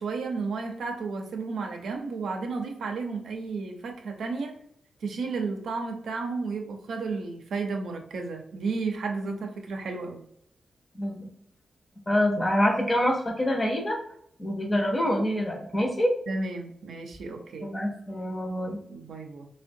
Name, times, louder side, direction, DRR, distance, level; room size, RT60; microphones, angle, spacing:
voice 1, 0.0-4.5 5.0-10.2 16.3-17.7 18.9-19.5, right 4 dB, 75° right, 3 dB, 0.5 m, -32 dB
voice 2, 10.9-11.3 12.1-14.0 14.4-16.1 17.3-18.8, equal, 20° left, 1 dB, 0.6 m, -26 dB
3.5 x 2.1 x 2.6 m, 0.68 s
wide cardioid pair, 150°, 0 cm